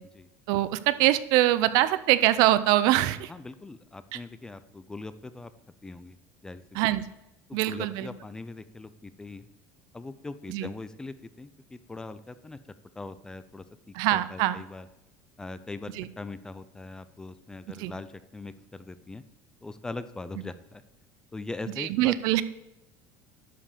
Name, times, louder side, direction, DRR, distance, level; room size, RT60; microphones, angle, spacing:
voice 1, 0.5-3.3 4.1-4.2 6.7-7.1 7.5-8.1 10.5-10.7 13.9-14.6 16.0-16.1 17.8-17.9 21.8-22.4, right 15 dB, 65° right, 15 dB, 0.6 m, -23 dB
voice 2, 3.3-5.5 5.8-6.2 6.4-6.8 7.5-9.5 9.9-12.6 12.9-14.9 15.4-19.2 19.6-20.8 21.3-22.1, left 3 dB, 10° left, 13 dB, 0.4 m, -41 dB
11.0 x 5.1 x 6.8 m, 0.92 s
cardioid pair, 160°, 7 cm